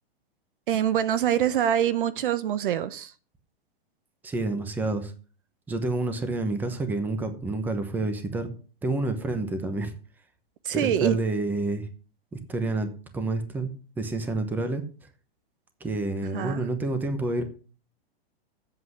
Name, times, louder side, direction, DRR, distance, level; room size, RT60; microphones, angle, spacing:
voice 1, 0.7-3.1 10.6-11.2 16.3-16.6, right 10 dB, 60° right, 1.0 m, -25 dB
voice 2, 4.2-5.1 5.7-8.5 8.8-9.9 10.7-11.9 12.3-14.8 15.8-17.4, right 2 dB, 5° right, 0.9 m, -29 dB
7.9 x 7.8 x 7.9 m
supercardioid pair, 165°, 30 cm